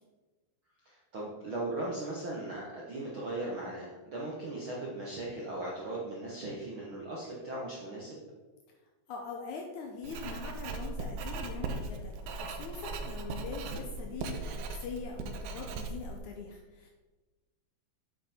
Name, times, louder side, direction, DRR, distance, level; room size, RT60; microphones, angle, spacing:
voice 1, 0.8-8.2, right 2 dB, 65° right, -5 dB, 1.2 m, -38 dB
voice 2, 9.1-16.9, left 5 dB, 85° left, 2 dB, 1.7 m, -42 dB
Writing, 10.0-16.2, right 3 dB, 85° right, 1.7 m, -38 dB
8.2 x 8.0 x 4.4 m, 1.3 s
omnidirectional pair, 4.5 m